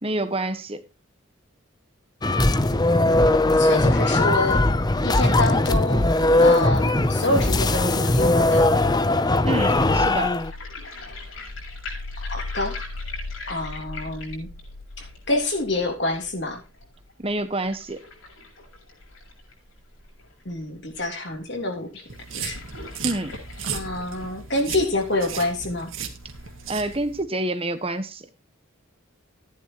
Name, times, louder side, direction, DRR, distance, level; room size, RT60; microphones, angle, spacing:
voice 1, 0.0-0.8 9.4-10.4 17.2-18.0 23.0-23.4 26.7-28.2, right 2 dB, 25° right, 1.3 m, -27 dB
sound 1, 2.2-10.5, left 2 dB, 20° left, 0.6 m, -19 dB
voice 2, 3.0-4.7 5.0-6.1 6.4-8.7 12.3-12.8 13.5-14.5 15.0-16.6 20.4-22.0 22.3-22.6 23.7-25.9, left 2 dB, 55° left, 3.3 m, -27 dB
sound 2, 9.5-20.5 20.9-21.0 21.2-21.3 21.9-27.0, left 3 dB, 75° left, 7.0 m, -38 dB
sound 3, 22.1-27.2, right 7 dB, 75° right, 2.1 m, -35 dB
14.5 x 10.5 x 3.0 m
head